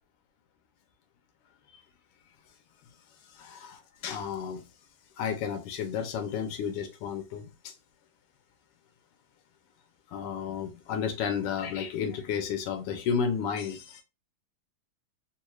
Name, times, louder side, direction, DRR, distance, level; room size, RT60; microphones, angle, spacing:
voice 1, 3.3-4.6 5.2-7.7 10.1-14.0, left 7 dB, 85° left, 1.7 m, -32 dB
3.8 x 2.3 x 3.0 m
omnidirectional pair, 2.4 m